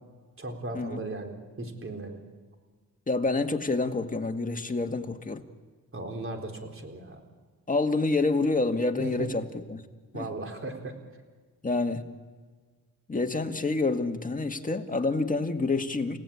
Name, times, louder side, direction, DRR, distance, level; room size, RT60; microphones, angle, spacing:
voice 1, 0.4-2.2 5.9-7.2 9.0-9.3 10.1-10.9 13.3-13.4, right 2 dB, 35° right, 4 dB, 4.1 m, -37 dB
voice 2, 3.1-5.4 7.7-9.8 10.1-10.3 11.6-12.0 13.1-16.2, left 3 dB, 20° left, 5 dB, 2.0 m, -28 dB
30.0 x 17.0 x 8.8 m, 1.5 s
cardioid pair, 80°, 36 cm